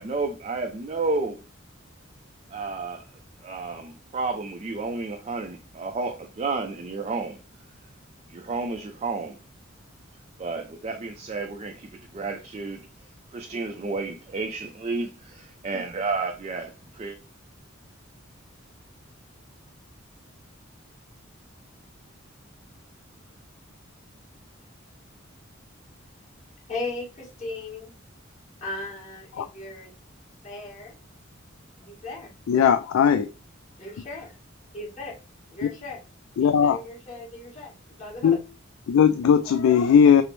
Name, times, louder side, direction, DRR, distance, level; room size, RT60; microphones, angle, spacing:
voice 1, 0.0-1.4 2.5-3.0 3.4-7.4 8.3-9.4 10.4-12.9 13.3-15.1 15.4-17.2, right 3 dB, 30° right, 0.4 m, -31 dB
voice 2, 26.7-27.9 28.6-29.9 30.4-30.9 31.8-32.3 33.8-34.3 34.7-35.1 35.5-36.0 36.4-38.4, left 2 dB, 35° left, 1.9 m, -37 dB
voice 3, 32.5-33.3 35.6-35.7 36.4-36.8 38.2-38.4 38.9-40.2, left 7 dB, 80° left, 0.3 m, -18 dB
5.9 x 2.0 x 3.1 m
head